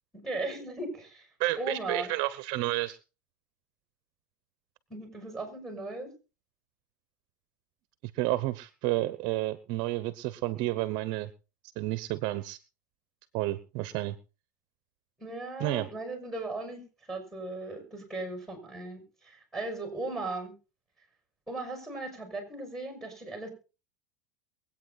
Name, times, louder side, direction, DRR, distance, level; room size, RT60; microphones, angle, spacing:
voice 1, 0.2-1.3 1.6-2.1 4.9-6.1 15.2-16.8 17.1-20.5 21.5-23.5, right 2 dB, 5° left, 5 dB, 6.3 m, -37 dB
voice 2, 1.4-3.0 8.1-11.3 11.8-12.6 13.3-14.2 15.6-15.9, right 17 dB, 50° right, 15 dB, 0.9 m, -30 dB
23.0 x 8.8 x 4.1 m, 0.33 s
supercardioid pair, 130°, 10 cm